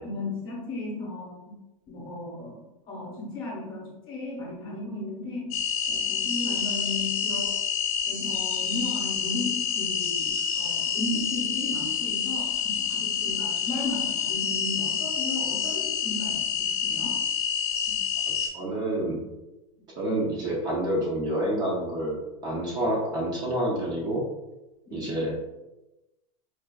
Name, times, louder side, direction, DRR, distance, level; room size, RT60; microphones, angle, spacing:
voice 1, 0.0-1.6 1.9-5.6 5.8-7.6 8.1-17.2 17.9-18.0 24.9-25.1, left 2 dB, 25° left, -2 dB, 1.0 m, -35 dB
sound 1, 5.5-18.5, left 7 dB, 45° left, 0.7 m, -28 dB
voice 2, 18.5-19.2 20.0-24.3 24.9-25.4, right 1 dB, 20° right, -4 dB, 0.5 m, -28 dB
4.5 x 2.4 x 2.2 m, 1.0 s
supercardioid pair, 155°, 19 cm